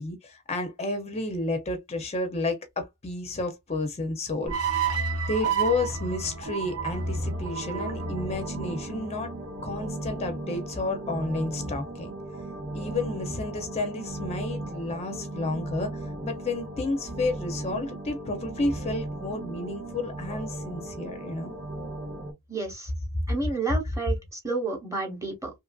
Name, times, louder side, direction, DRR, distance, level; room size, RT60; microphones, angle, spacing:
voice 1, 0.0-4.5 5.3-9.3 9.6-12.1 12.7-21.6 23.8-23.9, left 2 dB, 30° left, 0.5 m, -31 dB
sound 1, 4.5-9.7, right 5 dB, 85° right, 0.8 m, -31 dB
sound 2, 6.0-22.3, right 2 dB, 50° right, 0.8 m, -37 dB
voice 2, 22.5-22.9 23.3-25.5, right 3 dB, 15° right, 0.8 m, -31 dB
2.8 x 2.5 x 2.3 m
head